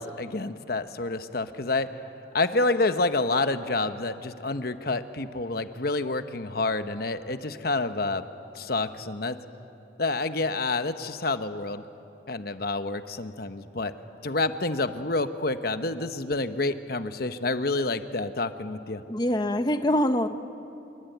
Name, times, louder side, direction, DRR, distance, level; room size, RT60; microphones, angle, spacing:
voice 1, 0.0-1.9 2.3-8.2 8.5-9.4 10.0-11.8 12.3-13.9 14.2-19.0, left 3 dB, 50° left, 10 dB, 1.0 m, -28 dB
voice 2, 19.1-20.3, left 1 dB, 20° left, 8 dB, 0.9 m, -24 dB
27.5 x 22.5 x 9.2 m, 2.7 s
head